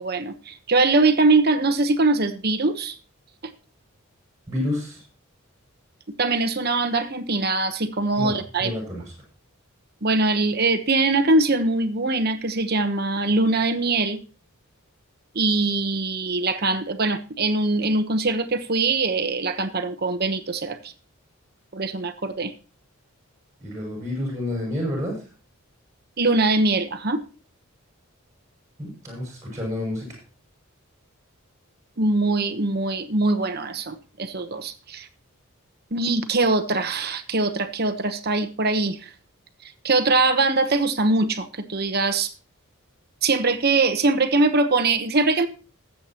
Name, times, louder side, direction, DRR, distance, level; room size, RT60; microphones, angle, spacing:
voice 1, 0.0-3.0 6.2-8.7 10.0-14.2 15.3-20.8 21.7-22.5 26.2-27.2 32.0-35.1 35.9-39.1 39.8-42.3 43.2-45.5, right 3 dB, 45° right, 1.1 m, -22 dB
voice 2, 4.5-5.0 8.2-9.0 23.6-25.2 28.8-30.2, left 1 dB, 15° right, 6.4 m, -29 dB
20.0 x 7.9 x 2.9 m
head